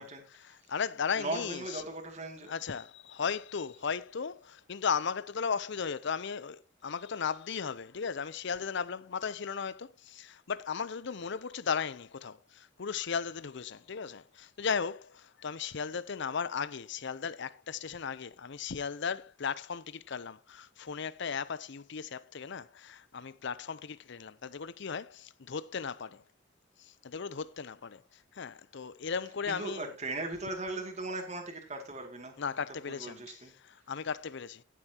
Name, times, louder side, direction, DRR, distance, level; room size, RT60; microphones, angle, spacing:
voice 1, 0.4-1.8 2.5-26.2 26.8-29.9 32.4-34.6, left 6 dB, 60° left, 0.6 m, -36 dB
voice 2, 1.2-2.5 29.5-32.3 32.9-33.5, right 2 dB, 35° right, 2.4 m, -38 dB
17.0 x 7.4 x 2.9 m
head